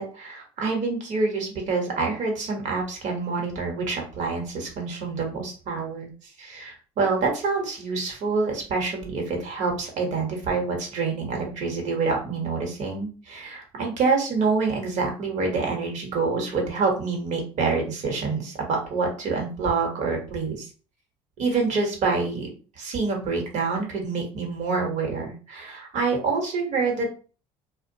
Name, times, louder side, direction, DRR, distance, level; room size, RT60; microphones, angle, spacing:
voice 1, 0.0-6.1 6.4-20.7 21.4-22.5 22.8-27.1, right 4 dB, 60° right, 1 dB, 1.0 m, -27 dB
2.4 x 2.1 x 2.7 m, 0.37 s
supercardioid pair, 80°, 14 cm